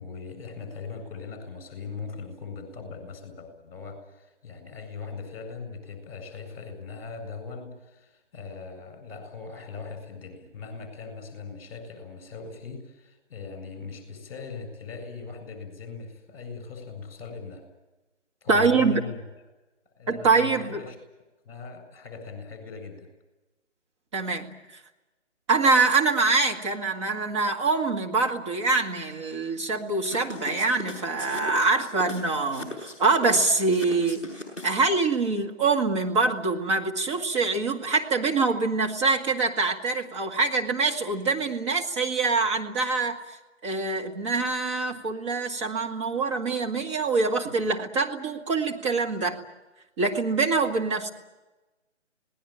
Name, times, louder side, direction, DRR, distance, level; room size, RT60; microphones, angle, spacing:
voice 1, 0.0-17.6 18.4-19.2 19.9-21.0 21.4-23.1, left 5 dB, 30° left, 8 dB, 7.7 m, -40 dB
voice 2, 18.5-19.0 20.1-20.8 24.1-24.8 25.5-34.2 34.6-43.2 43.6-49.4 50.0-51.1, right 4 dB, 25° right, 1 dB, 2.2 m, -24 dB
sound 1, 30.0-34.9, left 2 dB, 5° right, 6.8 m, -38 dB
27.0 x 19.5 x 9.0 m, 1.1 s
figure-of-eight pair, 155°, 36 cm